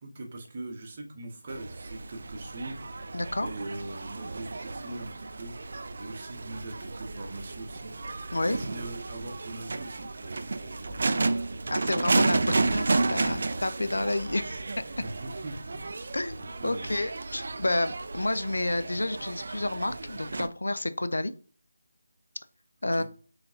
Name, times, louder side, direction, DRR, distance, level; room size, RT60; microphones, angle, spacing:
voice 1, 0.0-5.5 5.9-8.0 8.4-11.3 15.0-16.9 22.9-23.0, right 2 dB, 30° right, 1 dB, 0.9 m, -41 dB
sound 1, 1.5-20.5, right 3 dB, 50° right, 0.3 m, -32 dB
voice 2, 3.1-3.5 8.3-8.6 11.7-14.6 16.1-21.3 22.8-23.0, left 2 dB, 90° left, 11 dB, 0.5 m, -30 dB
4.4 x 3.4 x 2.8 m, 0.39 s
figure-of-eight pair, 170°, 0 cm